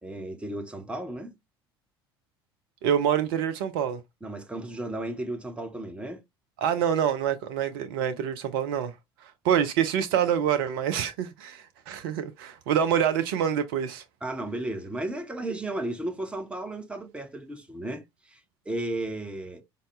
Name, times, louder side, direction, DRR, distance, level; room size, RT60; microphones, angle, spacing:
voice 1, 0.0-1.4 4.2-6.2 14.2-18.4 18.6-19.6, right 1 dB, 10° right, 1.0 m, -34 dB
voice 2, 2.8-4.0 6.6-8.9 9.2-14.0, right 9 dB, 60° right, 0.5 m, -26 dB
5.2 x 2.2 x 3.1 m
figure-of-eight pair, 65°, 13 cm